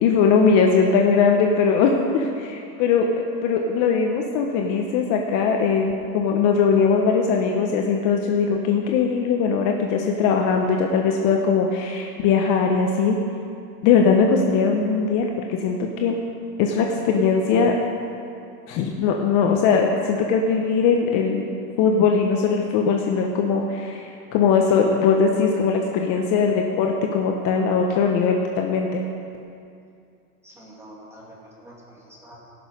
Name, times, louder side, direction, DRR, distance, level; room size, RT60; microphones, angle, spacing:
voice 1, 0.0-3.1 3.4-13.2 13.8-16.2 16.6-17.7 18.7-21.4 21.8-29.0, left 5 dB, 40° left, 2 dB, 1.0 m, -20 dB
voice 2, 30.4-32.4, equal, 5° right, -4 dB, 2.5 m, -46 dB
17.5 x 6.5 x 5.4 m, 2.4 s
supercardioid pair, 140°, 46 cm